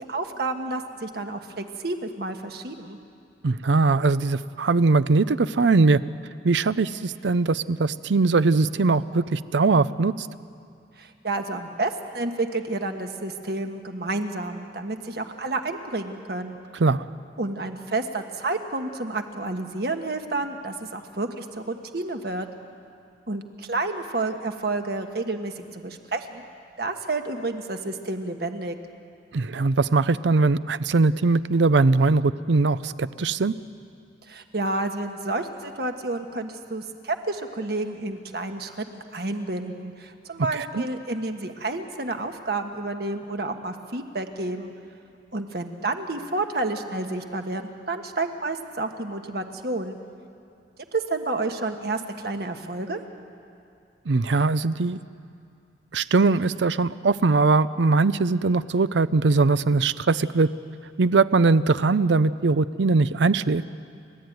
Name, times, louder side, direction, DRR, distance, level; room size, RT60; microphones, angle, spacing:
voice 1, 0.0-3.0 11.0-16.6 17.4-22.5 23.3-26.4 26.8-28.8 34.3-44.7 45.3-50.0 50.9-53.0, right 2 dB, 60° right, 5 dB, 1.5 m, -30 dB
voice 2, 3.4-6.0 6.4-10.3 16.8-17.0 29.3-33.5 40.8-40.9 54.1-55.0 55.9-60.5 61.0-63.6, right 3 dB, 75° right, 16 dB, 0.5 m, -21 dB
30.0 x 13.0 x 9.4 m, 2.5 s
head